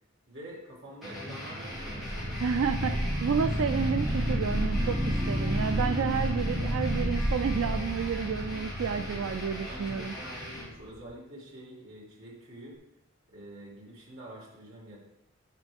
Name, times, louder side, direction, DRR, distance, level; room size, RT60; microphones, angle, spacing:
voice 1, 0.3-2.9 9.6-12.8 13.3-15.0, right 1 dB, 65° right, -4 dB, 2.7 m, -47 dB
sound 1, 1.0-10.6, equal, ahead, 3.1 m, -40 dB
sound 2, 1.7-8.7, equal, 45° right, 1.1 m, -30 dB
voice 2, 2.4-10.1, right 6 dB, 80° right, 9 dB, 0.4 m, -30 dB
sound 3, 3.8-11.0, equal, 50° left, 2.4 m, -43 dB
10.0 x 5.3 x 3.5 m, 0.87 s
head